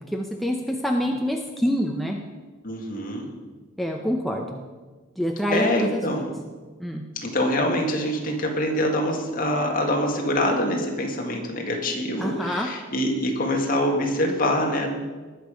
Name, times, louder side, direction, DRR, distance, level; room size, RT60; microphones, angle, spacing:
voice 1, 0.0-2.2 3.8-4.6 5.2-6.3 6.8-7.0 12.2-12.7, equal, ahead, 1 dB, 0.7 m, -26 dB
voice 2, 2.6-3.3 5.5-6.3 7.2-14.9, left 1 dB, 45° left, 1 dB, 2.0 m, -25 dB
20.0 x 6.8 x 5.1 m, 1.4 s
head